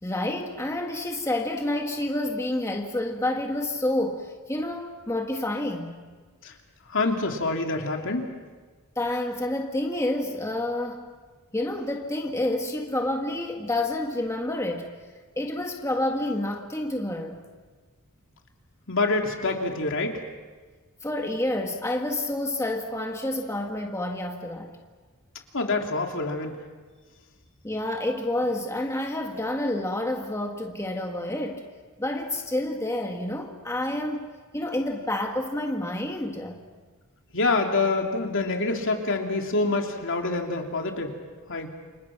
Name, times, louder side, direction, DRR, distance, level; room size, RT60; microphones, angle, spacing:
voice 1, 0.0-6.0 8.9-11.1 11.5-14.9 15.4-17.4 21.0-24.7 27.6-31.7 32.0-34.3 34.5-36.6, left 1 dB, 15° left, 2 dB, 1.6 m, -29 dB
voice 2, 6.9-8.3 18.9-20.2 25.5-26.6 37.3-41.2 41.5-41.7, left 3 dB, 60° left, 2 dB, 2.9 m, -26 dB
29.5 x 26.0 x 6.0 m, 1.4 s
head